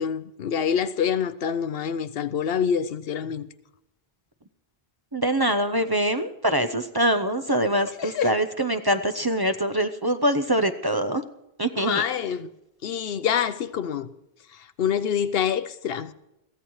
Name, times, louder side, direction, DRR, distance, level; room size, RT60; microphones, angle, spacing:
voice 1, 0.0-3.5 8.0-8.3 11.8-12.5 12.8-14.1 14.8-16.1, left 8 dB, 70° left, 0.8 m, -26 dB
voice 2, 5.1-11.2 11.6-12.0, right 1 dB, 25° right, 0.6 m, -24 dB
22.5 x 15.0 x 3.1 m
omnidirectional pair, 1.0 m